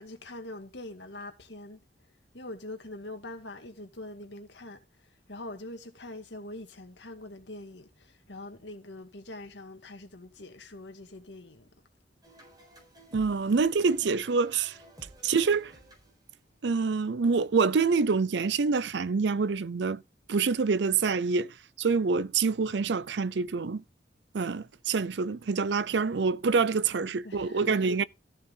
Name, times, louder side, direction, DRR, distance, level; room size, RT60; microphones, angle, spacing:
voice 1, 0.0-1.8 2.3-11.7 26.9-28.1, left 2 dB, 70° left, 2.2 m, -44 dB
sound 1, 12.2-16.4, right 1 dB, 25° right, 4.5 m, -53 dB
voice 2, 13.1-14.8 15.2-15.7 16.6-20.0 20.3-23.8 24.3-28.0, right 4 dB, 70° right, 0.5 m, -26 dB
14.0 x 6.6 x 3.8 m
head